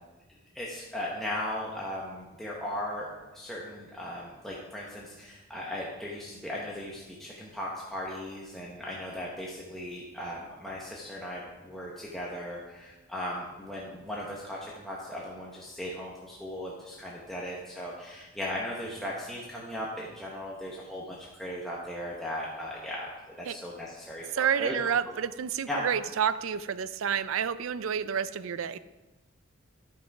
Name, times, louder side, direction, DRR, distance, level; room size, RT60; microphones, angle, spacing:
voice 1, 0.5-24.8 25.7-25.8, left 1 dB, ahead, -5 dB, 1.1 m, -37 dB
voice 2, 24.3-28.8, right 7 dB, 75° right, 15 dB, 0.4 m, -29 dB
11.0 x 6.2 x 4.8 m, 1.1 s
head